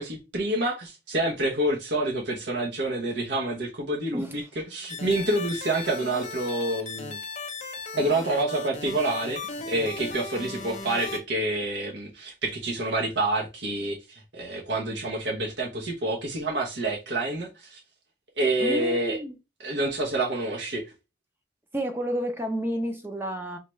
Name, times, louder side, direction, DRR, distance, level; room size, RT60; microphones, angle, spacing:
voice 1, 0.0-7.2 7.9-17.8 18.4-19.2 19.6-20.9, right 2 dB, 70° right, 0.8 m, -28 dB
sound 1, 4.9-11.2, left 3 dB, 40° left, 0.7 m, -37 dB
voice 2, 18.6-19.4 21.7-23.6, equal, 10° right, 0.5 m, -30 dB
5.5 x 2.2 x 3.1 m
head